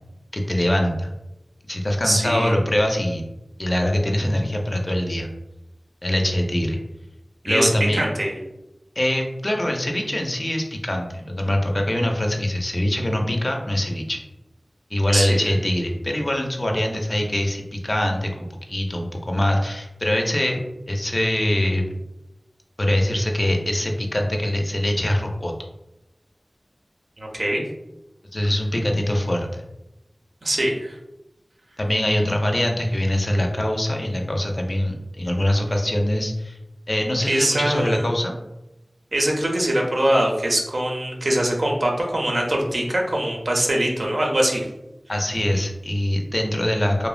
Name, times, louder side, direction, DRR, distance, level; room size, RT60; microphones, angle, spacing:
voice 1, 0.3-1.1 1.7-3.2 3.6-5.3 6.0-6.8 7.5-8.0 9.0-14.2 14.9-20.6 20.9-21.8 22.8-25.5 28.3-29.6 31.8-36.6 36.9-38.3 45.1-47.1, left 1 dB, 45° left, 2 dB, 0.4 m, -23 dB
voice 2, 2.0-2.6 7.4-8.3 15.1-15.4 27.2-27.6 30.4-31.0 37.3-38.1 39.1-44.7, right 1 dB, 70° right, -1 dB, 0.6 m, -22 dB
3.0 x 2.0 x 2.4 m, 0.92 s
wide cardioid pair, 50°, 0 cm